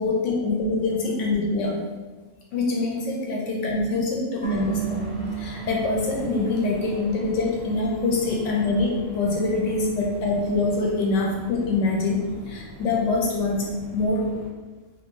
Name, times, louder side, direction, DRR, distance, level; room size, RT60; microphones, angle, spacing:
voice 1, 0.0-1.8 2.5-13.7 13.9-14.3, left 3 dB, 65° left, -2 dB, 0.9 m, -25 dB
sound 1, 4.4-7.7 8.0-8.1, right 9 dB, 30° left, 0.6 m, -34 dB
sound 2, 4.4-14.5, left 1 dB, 25° right, 0.6 m, -42 dB
2.8 x 2.5 x 3.7 m, 1.3 s
omnidirectional pair, 1.5 m